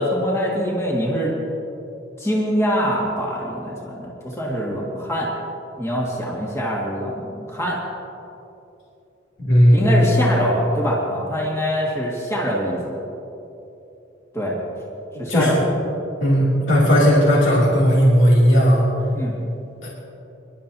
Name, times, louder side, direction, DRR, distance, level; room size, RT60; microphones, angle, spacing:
voice 1, 0.0-1.3 2.2-5.3 5.8-7.8 9.7-12.8 14.3-14.6 15.2-15.7 19.1-19.3, equal, 15° left, -4 dB, 1.9 m, -24 dB
voice 2, 9.4-10.2 15.3-15.6 16.2-18.9 19.8-19.9, equal, 75° left, -5 dB, 2.7 m, -16 dB
26.0 x 11.5 x 2.8 m, 2.9 s
head